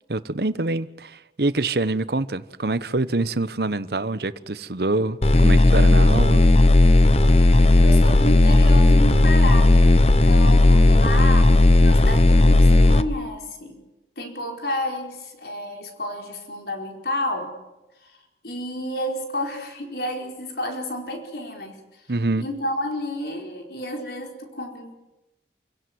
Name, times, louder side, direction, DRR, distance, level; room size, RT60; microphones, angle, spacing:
voice 1, 0.1-6.6 22.1-22.4, right 2 dB, 65° right, 1.0 m, -25 dB
sound 1, 5.2-13.0, left 2 dB, 35° left, 1.0 m, -14 dB
voice 2, 7.3-13.8 14.2-17.5 18.0-18.1 18.4-21.8 22.4-24.9, left 1 dB, 65° left, 4.7 m, -31 dB
27.5 x 17.0 x 9.5 m
head